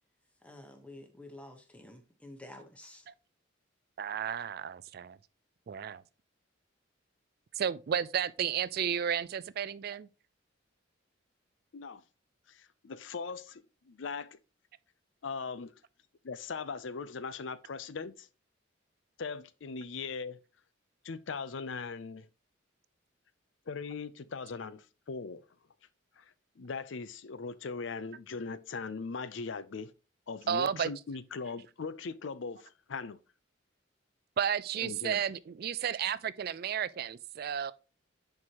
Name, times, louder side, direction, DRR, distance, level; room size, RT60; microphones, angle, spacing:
voice 1, 0.4-3.0, left 1 dB, 5° left, 1.0 m, -50 dB
voice 2, 4.0-5.2 5.7-6.0 7.6-10.1 30.5-30.9 34.4-37.7, right 8 dB, 50° right, 0.3 m, -32 dB
voice 3, 11.7-12.0 12.5-14.4 15.2-15.7 16.2-18.3 19.2-20.4 21.0-22.3 23.7-25.4 26.2-29.9 30.3-33.2 34.8-35.2, left 4 dB, 70° left, 0.5 m, -40 dB
9.5 x 4.6 x 2.9 m
head